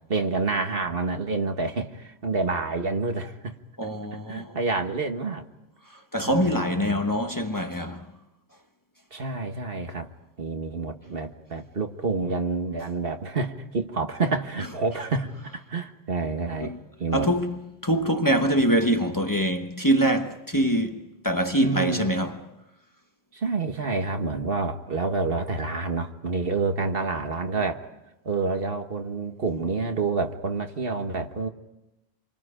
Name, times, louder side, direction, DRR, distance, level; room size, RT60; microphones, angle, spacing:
voice 1, 0.1-3.5 4.1-5.4 6.2-7.0 9.1-10.1 10.4-17.3 21.6-22.1 23.3-27.9 28.2-31.5, right 3 dB, 60° right, 1.7 m, -28 dB
voice 2, 3.8-4.6 6.1-8.1 16.6-16.8 17.1-22.4, right 1 dB, 20° left, 1.2 m, -24 dB
28.5 x 24.5 x 5.1 m
omnidirectional pair, 1.1 m